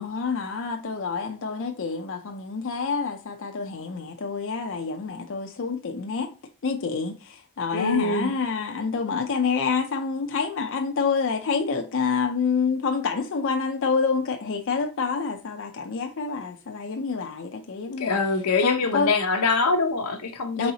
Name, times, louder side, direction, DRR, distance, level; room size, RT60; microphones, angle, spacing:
voice 1, 0.0-6.3 6.6-18.2 18.6-19.1 20.6-20.7, left 5 dB, 60° left, 0.5 m, -27 dB
voice 2, 7.7-8.3 18.0-20.7, left 3 dB, 90° left, 0.8 m, -24 dB
4.1 x 3.8 x 2.8 m
head